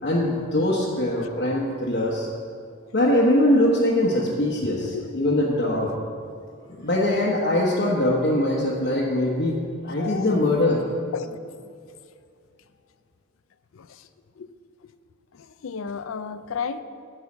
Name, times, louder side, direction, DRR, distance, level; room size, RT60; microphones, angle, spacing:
voice 1, 0.0-2.3 2.9-5.9 6.7-9.5 9.8-10.8, left 1 dB, 50° left, -5 dB, 1.1 m, -22 dB
voice 2, 4.6-5.1 9.8-10.3 11.1-11.4 13.7-14.0 14.4-14.5 15.3-16.8, left 6 dB, 70° left, 12 dB, 0.4 m, -33 dB
9.6 x 5.5 x 7.2 m, 2.3 s
head